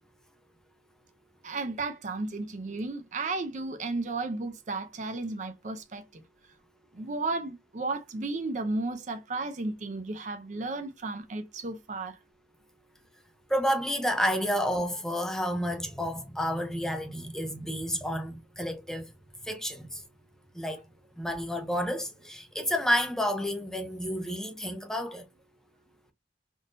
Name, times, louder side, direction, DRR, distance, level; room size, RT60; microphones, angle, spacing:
voice 1, 1.4-6.0 6.9-12.2, right 3 dB, 40° right, 0.5 m, -33 dB
voice 2, 13.5-19.1 19.4-20.0 20.5-20.8 21.2-25.2, equal, 5° left, 0.6 m, -30 dB
3.6 x 2.6 x 2.5 m
head